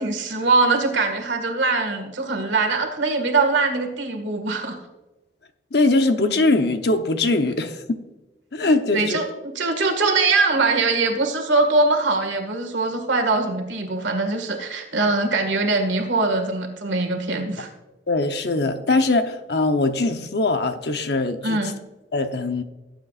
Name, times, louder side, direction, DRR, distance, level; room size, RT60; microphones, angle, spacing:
voice 1, 0.0-4.8 8.9-9.3 9.6-17.7 21.4-21.7, right 3 dB, 85° right, 5 dB, 1.9 m, -22 dB
voice 2, 5.7-8.0 8.5-9.2 18.1-21.6 22.1-22.6, left 2 dB, 60° left, 8 dB, 0.8 m, -21 dB
18.0 x 8.2 x 2.5 m, 1.1 s
head